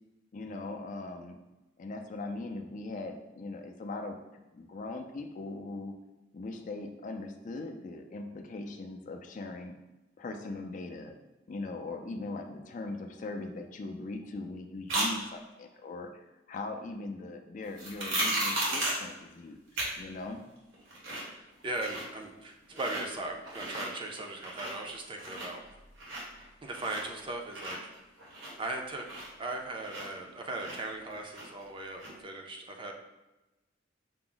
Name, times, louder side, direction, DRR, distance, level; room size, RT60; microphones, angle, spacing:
voice 1, 0.3-1.4 1.8-5.9 6.3-9.7 10.2-11.2 11.5-20.4, left 2 dB, 40° left, 5 dB, 0.4 m, -40 dB
sound 1, 14.9-15.1 17.8-19.1 19.8-19.9 20.3-20.4 20.7-21.3 21.6-22.2 22.7-23.0 23.4-23.9 24.3-24.9 25.2-27.2 27.5-30.3 30.6-31.6 32.0-32.1, right 1 dB, 90° right, 1.4 m, -34 dB
voice 2, 21.1-25.6 26.6-27.9 28.6-32.9, right 2 dB, 25° right, 2 dB, 0.4 m, -38 dB
5.7 x 2.0 x 3.8 m, 1.0 s
head